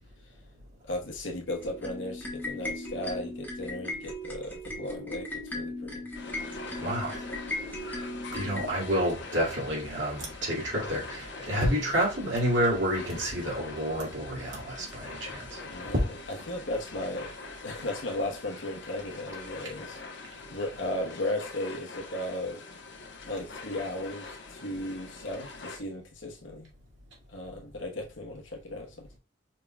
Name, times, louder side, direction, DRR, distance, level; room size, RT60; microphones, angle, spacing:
voice 1, 0.8-6.0 15.6-17.3 17.6-20.0 20.5-22.6 23.3-26.7 27.3-29.2, left 1 dB, 80° left, 1.2 m, -36 dB
sound 1, 1.5-8.7, left 1 dB, 10° left, 1.1 m, -37 dB
sound 2, 6.1-25.8, left 3 dB, 65° left, 1.0 m, -44 dB
voice 2, 6.8-7.2 7.9-8.0 8.3-15.6, equal, 70° right, 2.3 m, -29 dB
5.6 x 3.7 x 2.3 m
head